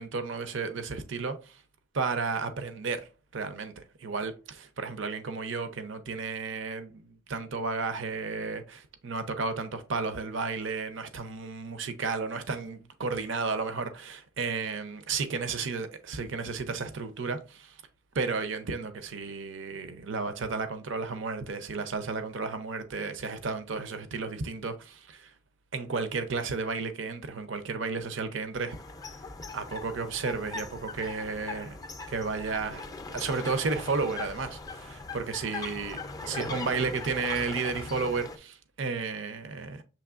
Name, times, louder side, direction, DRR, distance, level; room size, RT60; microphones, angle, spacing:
voice 1, 0.0-1.6 1.9-17.8 18.1-25.3 25.7-28.8 29.5-31.7 32.1-32.9 33.1-39.8, right 4 dB, 65° right, 0.6 m, -33 dB
sound 1, 28.7-38.4, left 3 dB, 15° left, 0.4 m, -40 dB
6.9 x 3.1 x 2.4 m
head